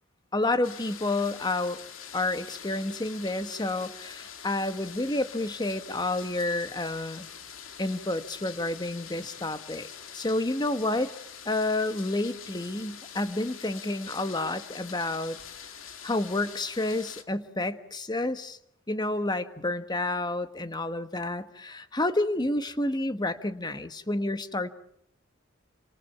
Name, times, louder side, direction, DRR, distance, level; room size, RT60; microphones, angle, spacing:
voice 1, 0.3-1.8 2.1-7.3 7.8-9.9 10.1-11.1 11.4-15.4 16.0-18.6 18.9-24.7, left 2 dB, 20° left, 10 dB, 1.4 m, -29 dB
sound 1, 0.6-17.2, left 8 dB, 80° left, 2.6 m, -45 dB
29.5 x 27.0 x 5.8 m, 0.69 s
head